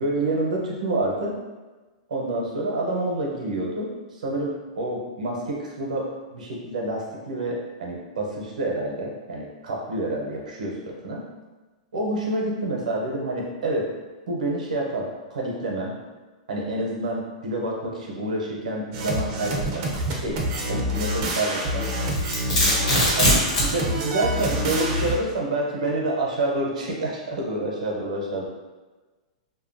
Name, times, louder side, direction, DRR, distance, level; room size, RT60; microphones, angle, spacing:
voice 1, 0.0-1.4 2.1-11.2 11.9-13.9 14.3-15.9 16.5-19.9 20.1-20.4 20.7-21.9 23.1-28.5, right 1 dB, 85° right, -2 dB, 0.8 m, -28 dB
sound 1, 18.9-25.2, equal, 40° right, 0.5 m, -27 dB
Domestic sounds home sounds, 21.8-23.8, equal, 60° left, 1.1 m, -21 dB
2.8 x 2.3 x 2.6 m, 1.2 s
hypercardioid pair, 140°, 4 cm